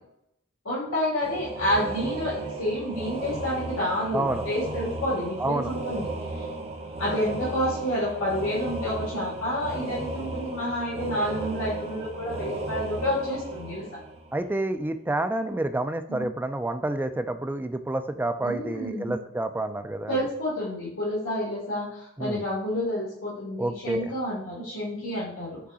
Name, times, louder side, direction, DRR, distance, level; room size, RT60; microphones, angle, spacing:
voice 1, 0.6-6.1 6.4-6.5 7.0-13.8 16.1-16.3 18.4-19.1 20.1-25.6, left 1 dB, 80° left, -8 dB, 2.1 m, -29 dB
sound 1, 1.2-14.7, right 2 dB, 30° right, 0.8 m, -35 dB
voice 2, 4.1-4.4 5.4-5.7 14.3-20.2 22.2-22.4 23.6-24.1, right 2 dB, 10° right, 8 dB, 0.3 m, -29 dB
6.1 x 3.7 x 4.2 m, 0.77 s
head